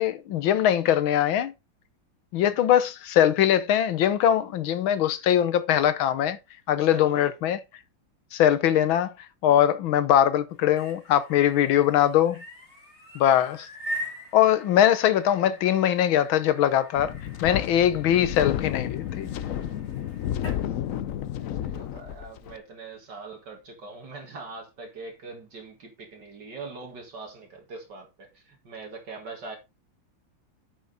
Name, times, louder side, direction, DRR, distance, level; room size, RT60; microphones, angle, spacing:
voice 1, 0.0-1.5 2.3-6.4 6.7-7.6 8.3-9.1 9.4-12.4 13.1-13.7 14.3-17.1 17.4-19.3, left 10 dB, 90° left, 1.8 m, -21 dB
voice 2, 6.8-7.3 21.6-29.6, right 3 dB, 60° right, 2.3 m, -42 dB
sound 1, 10.5-20.6, equal, 35° left, 3.2 m, -42 dB
Wind, 17.0-22.6, left 11 dB, 75° left, 0.7 m, -32 dB
9.2 x 6.4 x 3.9 m
omnidirectional pair, 2.1 m